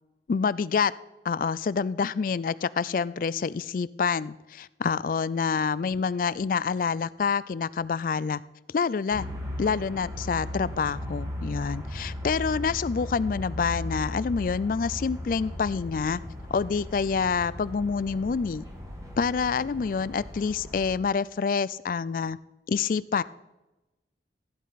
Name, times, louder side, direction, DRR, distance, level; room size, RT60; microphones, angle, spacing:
voice 1, 0.3-0.9 1.2-8.4 8.7-9.3 9.6-16.2 16.5-18.6 19.2-22.4 22.7-23.2, left 5 dB, 50° left, 18 dB, 0.3 m, -27 dB
sound 1, 9.1-21.0, left 1 dB, 20° right, 1.6 m, -37 dB
15.5 x 10.5 x 4.1 m, 1.0 s
head